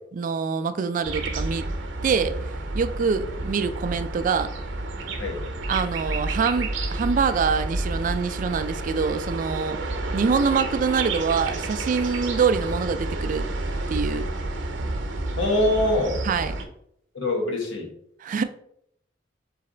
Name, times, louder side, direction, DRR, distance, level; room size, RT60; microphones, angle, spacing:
voice 1, 0.1-1.7 2.0-4.5 5.7-9.8 10.1-13.5 13.9-14.3 16.2-16.5 18.2-18.4, right 5 dB, 45° right, 11 dB, 0.3 m, -25 dB
sound 1, 1.0-16.6, right 2 dB, 70° right, 0.8 m, -30 dB
voice 2, 15.4-16.2 17.1-17.9, left 1 dB, 85° left, 0 dB, 1.3 m, -23 dB
4.0 x 3.2 x 3.8 m, 0.73 s
head